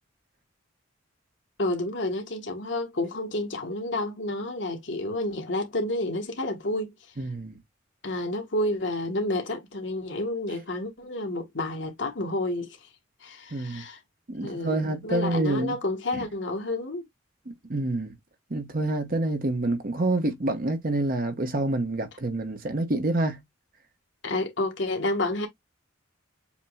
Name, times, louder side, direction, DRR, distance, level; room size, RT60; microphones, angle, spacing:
voice 1, 1.6-6.9 8.0-12.9 13.2-14.0 14.4-17.0 24.2-25.5, left 2 dB, 65° left, 1.5 m, -30 dB
voice 2, 7.2-7.6 13.5-13.8 14.3-15.8 16.1-16.2 17.5-18.1 18.5-23.4, right 2 dB, 45° right, 1.1 m, -27 dB
7.1 x 3.0 x 2.3 m
head